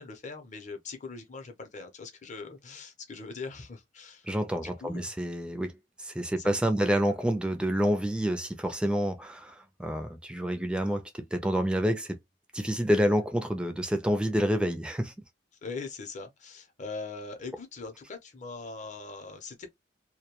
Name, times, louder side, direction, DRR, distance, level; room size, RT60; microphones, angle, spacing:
voice 1, 0.0-4.3 4.6-5.1 6.4-6.9 15.6-19.7, left 4 dB, 40° left, 0.6 m, -41 dB
voice 2, 4.3-5.7 6.0-12.2 12.5-15.1, equal, 5° right, 0.4 m, -28 dB
2.2 x 2.2 x 2.9 m
head